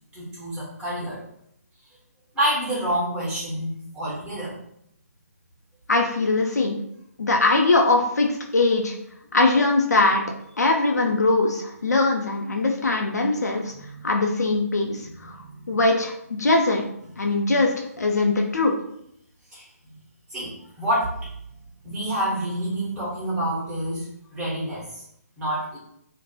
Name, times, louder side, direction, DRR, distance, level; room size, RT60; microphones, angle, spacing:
voice 1, 0.1-1.2 2.3-4.6 13.8-14.1 15.0-15.8 19.5-20.0 20.3-21.3 21.8-24.1 24.3-25.0 25.4-25.8, right 1 dB, 10° right, -9 dB, 1.2 m, -28 dB
voice 2, 5.9-6.8 7.2-8.9 9.3-10.2 10.6-13.7 14.0-15.3 15.7-16.8 17.2-18.7, left 3 dB, 80° left, 1 dB, 0.4 m, -21 dB
3.0 x 2.1 x 2.8 m, 0.74 s
figure-of-eight pair, 140°, 9 cm